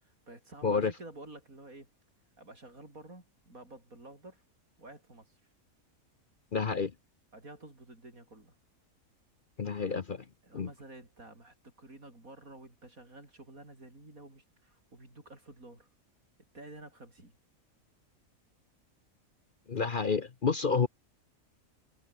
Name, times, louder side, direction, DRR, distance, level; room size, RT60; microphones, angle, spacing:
voice 1, 0.0-1.9 2.4-4.4 4.8-5.4 7.3-8.6 9.8-10.0 10.4-15.9 16.5-17.4 19.7-20.2 20.7-20.8, right 2 dB, 80° right, 7.1 m, -51 dB
voice 2, 6.5-6.9 9.6-10.2 10.5-10.7 19.7-20.9, left 5 dB, 40° left, 1.0 m, -29 dB
omnidirectional pair, 1.5 m